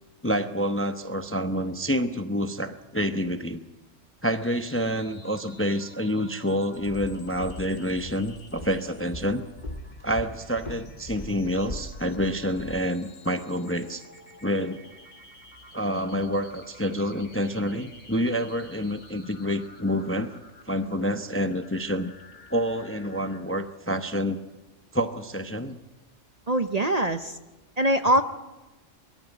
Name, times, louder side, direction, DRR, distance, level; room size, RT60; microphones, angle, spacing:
voice 1, 0.2-3.6 4.2-9.5 10.0-14.0 14.4-14.8 15.7-20.3 20.7-22.1 22.5-24.4 24.9-25.8, equal, 15° left, 8 dB, 0.7 m, -28 dB
sound 1, 4.2-23.4, left 2 dB, 65° left, 3.2 m, -51 dB
Walk footsteps, 6.8-12.9, left 1 dB, 35° left, 1.8 m, -40 dB
voice 2, 26.5-27.4 27.8-28.2, right 1 dB, 35° right, 8 dB, 0.8 m, -22 dB
23.0 x 13.5 x 9.0 m, 1.1 s
omnidirectional pair, 1.3 m